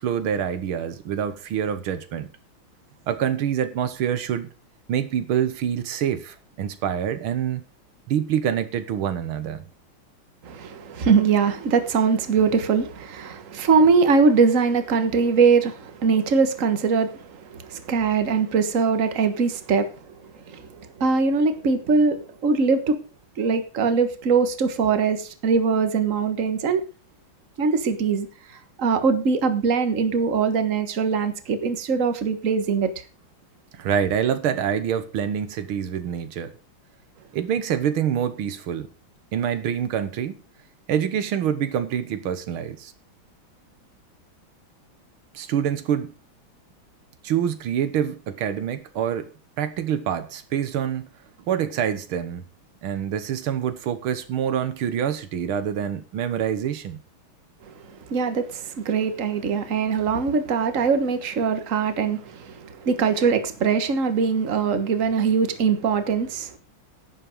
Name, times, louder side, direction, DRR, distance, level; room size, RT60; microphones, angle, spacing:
voice 1, 0.0-2.3 3.1-4.5 4.9-7.6 8.1-9.7 33.7-36.5 37.3-38.9 39.3-40.4 40.9-42.9 45.3-46.1 47.2-49.3 49.6-51.1 51.5-52.5 52.8-57.0, right 9 dB, 90° right, 2.0 m, -26 dB
voice 2, 10.4-19.9 20.5-23.0 23.4-26.8 27.6-28.3 28.8-32.9 58.1-66.6, right 5 dB, 40° right, 1.6 m, -22 dB
11.0 x 8.6 x 5.1 m
omnidirectional pair, 2.3 m